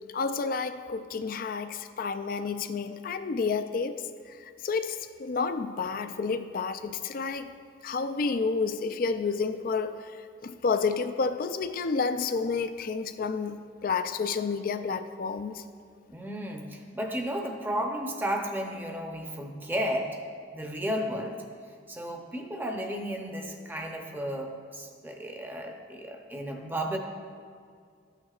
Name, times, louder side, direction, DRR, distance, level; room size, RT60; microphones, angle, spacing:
voice 1, 0.1-7.5 7.8-10.1 10.4-15.6, left 4 dB, 50° left, 10 dB, 0.4 m, -30 dB
voice 2, 16.1-20.2 20.5-21.4 21.9-27.0, equal, 10° right, 2 dB, 0.7 m, -33 dB
12.5 x 8.9 x 2.4 m, 2.2 s
head